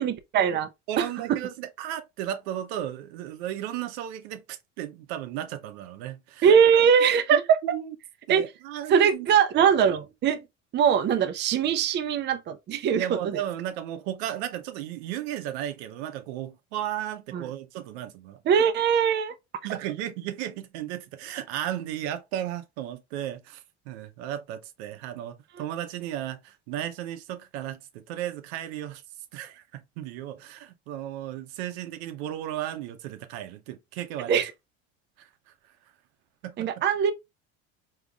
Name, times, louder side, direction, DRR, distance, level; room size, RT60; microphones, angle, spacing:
voice 1, 0.0-0.7 1.0-1.1 6.4-7.6 8.3-8.4 8.9-10.4 10.7-13.4 17.3-17.5 18.5-19.3 34.3-34.5 36.6-37.1, right 7 dB, 35° right, 0.5 m, -21 dB
voice 2, 0.9-6.5 7.3-7.9 8.3-9.3 12.9-18.6 19.6-29.0 29.3-34.4 35.2-35.3 36.4-36.7, right 11 dB, 85° right, 0.7 m, -35 dB
3.7 x 2.9 x 2.3 m
supercardioid pair, 110°, 32 cm